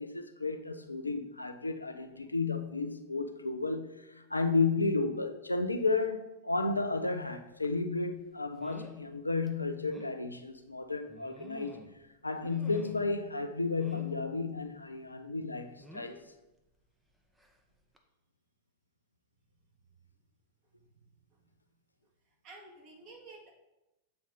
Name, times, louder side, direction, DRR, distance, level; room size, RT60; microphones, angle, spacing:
voice 1, 0.0-11.8 12.2-16.2, left 3 dB, 85° left, 0.4 m, -33 dB
sound 1, 7.6-7.8 8.6-9.0 9.5-9.6 9.9-10.2 11.1-12.0 12.4-13.2 13.8-14.2 15.8-16.2 17.4-17.6 17.9-18.0, equal, 5° right, 0.7 m, -50 dB
voice 2, 20.7-21.1 21.3-21.4 22.4-23.5, right 3 dB, 40° right, 1.9 m, -52 dB
7.6 x 4.1 x 3.7 m
figure-of-eight pair, 90°, 0 cm